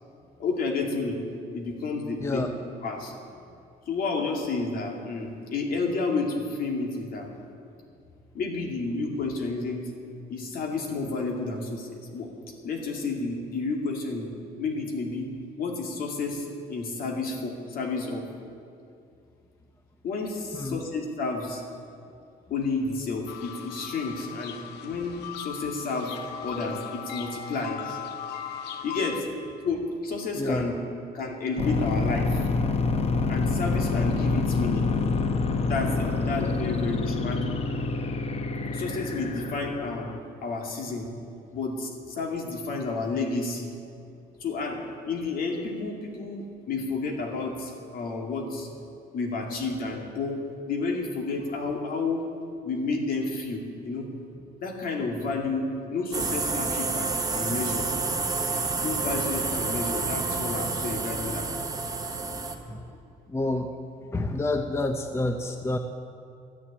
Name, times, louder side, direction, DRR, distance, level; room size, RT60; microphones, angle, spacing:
voice 1, 0.4-1.2 1.5-2.5 2.8-3.1 3.9-7.3 8.3-9.9 10.3-12.3 12.6-14.3 14.6-15.3 15.6-18.3 20.0-21.6 22.5-24.6 24.8-28.0 28.8-29.3 29.6-30.7 31.1-32.4 33.3-34.9 35.7-37.5 38.7-40.1 40.4-41.1 41.5-43.7 44.4-48.7 49.1-50.4 50.7-52.2 52.6-54.1 54.6-57.9 58.8-61.5, left 3 dB, 60° left, 1 dB, 2.4 m, -31 dB
voice 2, 2.2-2.5 20.5-20.8 30.4-30.6 62.7-62.8 63.3-63.7 64.1-65.8, left 2 dB, 15° left, 6 dB, 0.7 m, -28 dB
sound 1, 23.3-29.2, left 8 dB, 80° left, 0.8 m, -38 dB
sound 2, 31.6-40.2, left 3 dB, 35° left, 0.9 m, -27 dB
sound 3, 56.1-62.5, right 4 dB, 20° right, 1.2 m, -29 dB
12.5 x 7.2 x 9.9 m, 2.5 s
cardioid pair, 110°, 17 cm